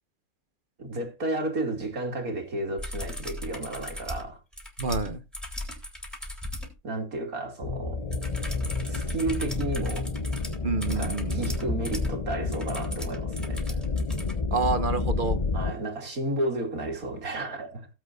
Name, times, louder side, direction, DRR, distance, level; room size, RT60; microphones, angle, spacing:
voice 1, 0.8-4.4 6.8-8.0 8.9-10.1 10.9-13.8 15.5-17.9, right 2 dB, 75° right, 3.1 m, -32 dB
sound 1, 2.8-6.7 8.1-14.3 16.1-16.2, left 1 dB, ahead, 3.3 m, -37 dB
voice 2, 4.8-5.2 10.6-11.5 14.5-15.4, right 3 dB, 35° right, 1.3 m, -28 dB
sound 2, 7.6-15.7, left 3 dB, 30° left, 0.7 m, -30 dB
18.0 x 8.1 x 2.5 m
omnidirectional pair, 1.5 m